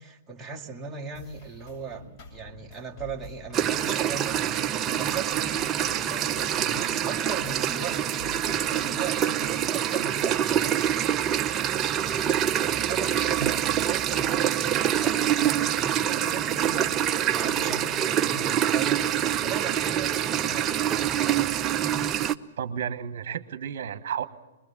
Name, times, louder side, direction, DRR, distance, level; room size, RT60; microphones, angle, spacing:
voice 1, 0.0-11.1 12.0-19.0 19.4-21.0, right 6 dB, 10° right, -2 dB, 1.9 m, -38 dB
sound 1, 1.1-9.5, left 2 dB, 45° left, 7.1 m, -47 dB
sound 2, 3.5-22.4, right 10 dB, 25° right, 0.7 m, -25 dB
voice 2, 22.6-24.2, right 8 dB, 60° right, 11 dB, 1.2 m, -32 dB
22.0 x 21.5 x 7.2 m, 1.1 s
hypercardioid pair, 125°, 0 cm